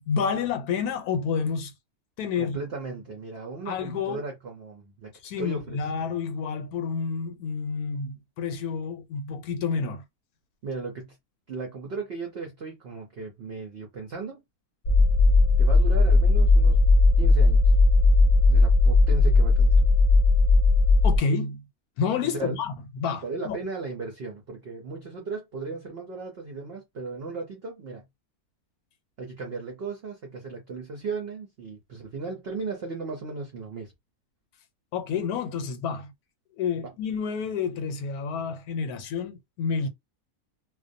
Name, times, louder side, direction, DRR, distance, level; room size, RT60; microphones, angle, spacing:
voice 1, 0.0-1.7 2.2-2.6 3.7-4.2 5.2-10.0 21.0-21.6 22.0-23.6 34.9-36.1 36.6-39.9, left 5 dB, 90° left, 1.1 m, -29 dB
voice 2, 2.4-5.1 5.4-5.9 10.6-11.2 11.5-14.4 15.6-16.8 17.2-17.7 18.5-19.9 22.2-22.6 23.2-28.0 29.2-33.9 36.8-36.9, right 4 dB, 60° right, 0.6 m, -36 dB
sound 1, 14.9-21.2, left 3 dB, 60° left, 0.7 m, -18 dB
2.4 x 2.2 x 2.5 m
omnidirectional pair, 1.6 m